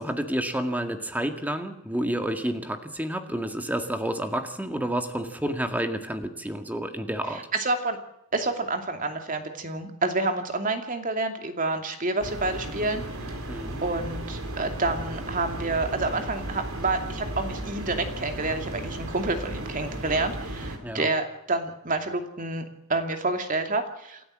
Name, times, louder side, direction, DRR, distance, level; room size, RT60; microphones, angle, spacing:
voice 1, 0.0-7.4 13.5-13.8 20.8-21.1, right 1 dB, 10° right, 6 dB, 2.0 m, -30 dB
voice 2, 7.3-8.0 8.3-13.4 13.8-24.2, right 2 dB, 40° right, 6 dB, 2.6 m, -28 dB
sound 1, 12.2-20.8, right 1 dB, 75° right, 4.3 m, -35 dB
28.5 x 13.0 x 7.6 m, 0.80 s
head